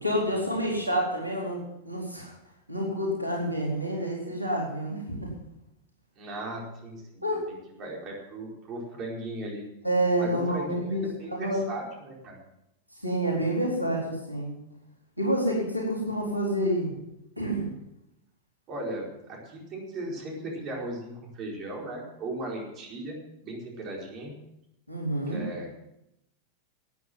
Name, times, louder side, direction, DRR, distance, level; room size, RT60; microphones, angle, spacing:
voice 1, 0.0-2.3 2.7-5.3 7.2-7.4 9.8-11.6 13.0-14.5 15.2-16.9 17.4-17.7 24.9-25.4, right 1 dB, 85° right, -2 dB, 4.0 m, -28 dB
voice 2, 6.2-9.6 10.2-12.4 18.7-24.4 25.3-25.7, right 1 dB, 35° right, -1 dB, 4.7 m, -37 dB
13.5 x 9.5 x 7.6 m, 0.84 s
figure-of-eight pair, 90°, 0 cm